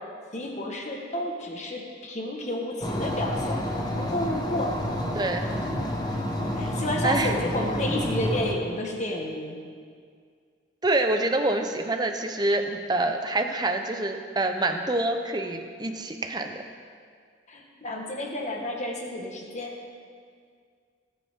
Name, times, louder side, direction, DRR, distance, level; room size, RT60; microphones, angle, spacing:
voice 1, 0.3-3.7 3.9-4.8 6.6-9.6 17.5-19.7, left 1 dB, 40° left, 0 dB, 1.4 m, -31 dB
sound 1, 2.8-8.5, equal, 20° left, 1.0 m, -29 dB
voice 2, 10.8-16.6, right 2 dB, 20° right, 5 dB, 0.8 m, -26 dB
18.5 x 8.5 x 3.7 m, 2.1 s
head